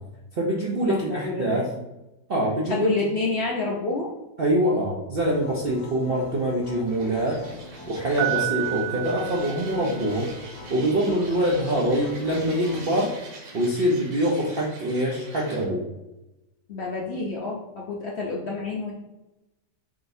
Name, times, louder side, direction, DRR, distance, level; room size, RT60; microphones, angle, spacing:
voice 1, 0.4-1.7 2.3-2.9 4.4-7.4 7.9-10.3 10.7-13.1 13.5-15.8, right 1 dB, 85° right, -4 dB, 0.5 m, -24 dB
voice 2, 0.9-1.7 2.7-4.1 16.7-18.9, left 3 dB, 75° left, -3 dB, 0.6 m, -28 dB
sound 1, 5.2-13.0, left 2 dB, 55° left, 0.9 m, -44 dB
sound 2, 6.9-15.7, right 3 dB, 65° right, 1.4 m, -45 dB
Piano, 8.2-10.3, right 17 dB, 20° right, 0.7 m, -30 dB
4.9 x 3.7 x 2.6 m, 0.96 s
omnidirectional pair, 1.9 m